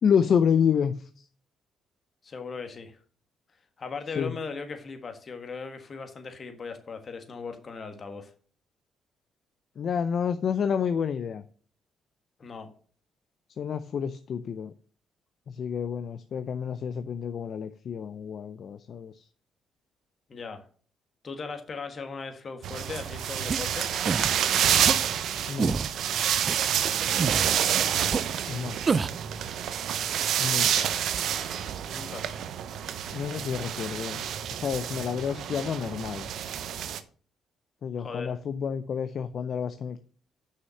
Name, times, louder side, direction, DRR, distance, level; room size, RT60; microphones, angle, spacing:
voice 1, 0.0-1.2 4.2-4.3 9.8-11.4 13.6-14.7 15.5-19.3 25.5-25.7 28.5-28.8 30.4-30.9 33.1-34.2 34.6-36.3 37.8-40.0, left 7 dB, 60° left, 11 dB, 0.5 m, -29 dB
voice 2, 2.2-3.0 3.8-8.3 12.4-12.7 20.3-20.6 21.2-23.9 27.4-27.6 31.9-32.3 38.0-38.3, left 4 dB, 40° left, 7 dB, 1.6 m, -38 dB
sound 1, 22.6-37.0, right 9 dB, 75° right, 0.6 m, -28 dB
sound 2, 23.5-23.6 24.1-24.3 24.8-25.0 25.6-25.9 26.5-26.6 27.2-27.6 28.1-28.2 28.9-29.2, right 5 dB, 40° right, 0.3 m, -27 dB
6.5 x 5.7 x 7.0 m, 0.44 s
cardioid pair, 90°, 0 cm